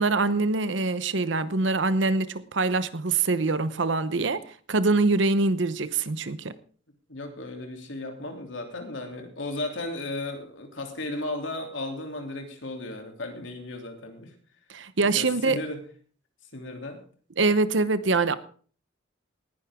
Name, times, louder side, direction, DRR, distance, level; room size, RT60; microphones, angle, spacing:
voice 1, 0.0-4.4 4.7-6.5 14.7-15.6 17.4-18.4, right 3 dB, 75° right, 0.9 m, -24 dB
voice 2, 7.1-14.3 15.0-15.8 16.5-17.0, left 2 dB, 80° left, 3.1 m, -35 dB
19.0 x 10.5 x 3.7 m
head